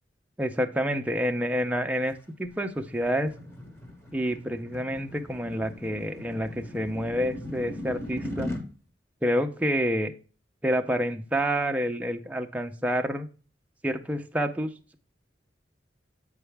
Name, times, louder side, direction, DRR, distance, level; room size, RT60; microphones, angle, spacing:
voice 1, 0.4-3.3 4.1-8.5 9.2-10.1 10.6-13.3 13.8-15.0, equal, 10° right, 5 dB, 0.6 m, -28 dB
sound 1, 2.2-8.6, left 1 dB, 15° left, 1.2 m, -39 dB
8.0 x 4.7 x 3.4 m, 0.36 s
head